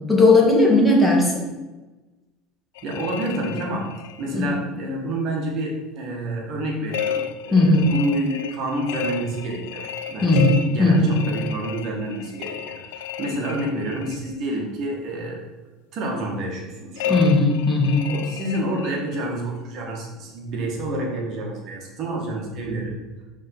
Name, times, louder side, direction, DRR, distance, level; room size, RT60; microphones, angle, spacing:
voice 1, 0.1-1.4 4.3-4.4 7.5-7.9 10.2-11.2 17.1-18.1, left 2 dB, 5° left, -2 dB, 1.9 m, -17 dB
sound 1, 2.8-4.3 6.9-14.3 17.0-19.3, left 9 dB, 85° left, 0.4 m, -32 dB
voice 2, 2.8-3.9 4.2-15.4 15.9-17.2 18.1-23.0, right 1 dB, 55° right, -1 dB, 1.9 m, -28 dB
5.2 x 3.8 x 5.6 m, 1.1 s
supercardioid pair, 100°, 0 cm